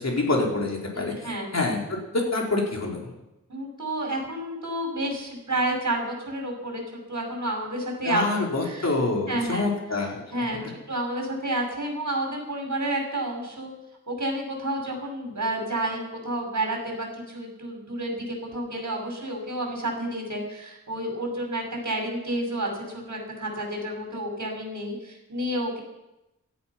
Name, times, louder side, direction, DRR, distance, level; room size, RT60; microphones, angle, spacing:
voice 1, 0.0-1.1 1.5-3.0 8.0-10.2 10.6-10.7, left 2 dB, 55° left, -1 dB, 4.3 m, -26 dB
voice 2, 0.9-1.5 3.5-6.8 7.1-8.3 8.6-8.9 9.3-9.7 10.0-10.6 10.9-13.7 14.1-25.8, right 1 dB, 65° right, 1 dB, 5.7 m, -30 dB
17.0 x 13.5 x 6.0 m, 0.93 s
wide cardioid pair, 85°, 31 cm